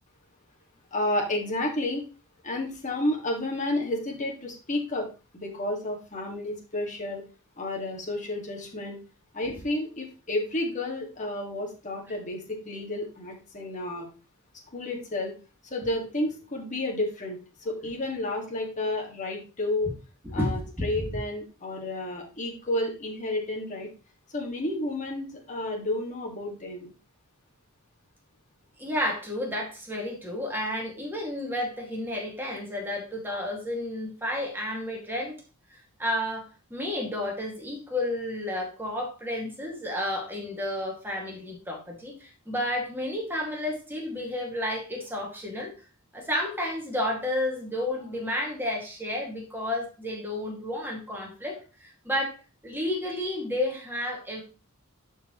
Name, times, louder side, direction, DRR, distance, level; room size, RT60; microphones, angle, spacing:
voice 1, 0.9-2.0 2.4-5.1 5.4-7.2 7.6-9.0 9.3-14.1 14.7-15.3 15.7-17.4 17.6-19.9 20.3-23.9 24.3-26.9, left 1 dB, 35° left, 0 dB, 1.9 m, -31 dB
voice 2, 20.2-21.0 28.8-35.4 36.0-45.7 46.1-52.3 52.6-54.4, left 1 dB, 10° right, -1 dB, 2.1 m, -31 dB
11.5 x 4.6 x 3.1 m, 0.32 s
head